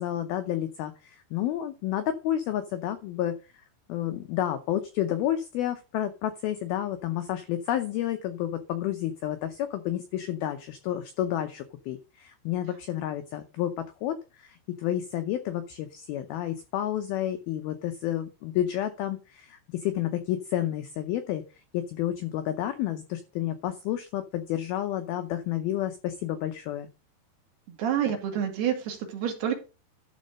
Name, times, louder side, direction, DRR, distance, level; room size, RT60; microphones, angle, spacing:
voice 1, 0.0-3.4 3.9-21.4 21.7-26.9, left 12 dB, 85° left, 8 dB, 2.1 m, -30 dB
voice 2, 27.7-29.6, right 9 dB, 60° right, 3 dB, 3.7 m, -28 dB
12.0 x 4.2 x 6.4 m, 0.31 s
omnidirectional pair, 5.4 m